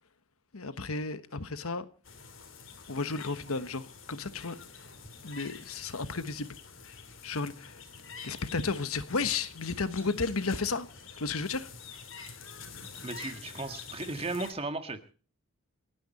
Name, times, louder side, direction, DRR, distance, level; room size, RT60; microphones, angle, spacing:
voice 1, 0.5-1.9 2.9-4.6 5.2-6.6 7.2-7.8 8.2-10.9 11.2-11.7, left 4 dB, 85° left, 1.3 m, -33 dB
sound 1, 2.0-14.5, left 5 dB, 65° left, 3.0 m, -47 dB
voice 2, 13.0-15.1, right 2 dB, 25° right, 1.7 m, -36 dB
29.0 x 10.5 x 4.2 m
head